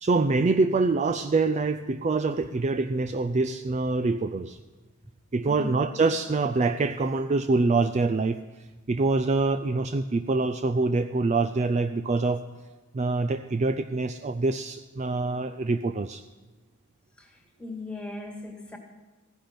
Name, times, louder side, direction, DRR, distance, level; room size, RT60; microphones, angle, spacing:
voice 1, 0.0-4.6 5.3-8.4 8.9-12.5 12.9-16.2, right 3 dB, 30° right, 10 dB, 0.4 m, -25 dB
voice 2, 5.4-6.0 17.2-18.8, left 2 dB, 5° left, 2 dB, 1.9 m, -39 dB
15.0 x 10.5 x 6.0 m, 1.2 s
head